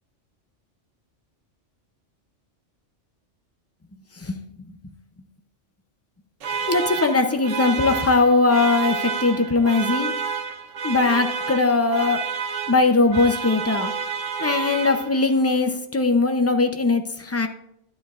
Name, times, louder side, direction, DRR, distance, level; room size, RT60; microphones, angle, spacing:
voice 1, 4.2-4.7 6.7-10.1 10.8-12.2 12.7-13.9 14.4-17.5, left 3 dB, 20° left, 6 dB, 0.4 m, -20 dB
sound 1, 6.4-15.4, right 6 dB, 90° right, 1.2 m, -30 dB
12.0 x 10.5 x 2.4 m, 0.76 s
omnidirectional pair, 1.3 m